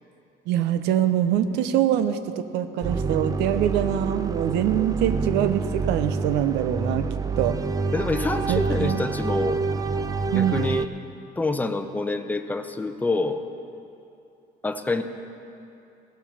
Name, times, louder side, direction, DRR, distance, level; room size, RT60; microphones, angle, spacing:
voice 1, 0.5-7.1 7.4-7.6 8.5-9.0 10.3-10.6, right 10 dB, 85° right, 10 dB, 0.7 m, -24 dB
sound 1, 2.8-10.9, right 4 dB, 20° right, 0.5 m, -27 dB
voice 2, 7.9-9.6 10.3-10.9 11.4-13.4 14.6-15.0, left 3 dB, 10° left, 7 dB, 0.8 m, -27 dB
16.5 x 7.3 x 7.0 m, 2.7 s
cardioid pair, 110°, 17 cm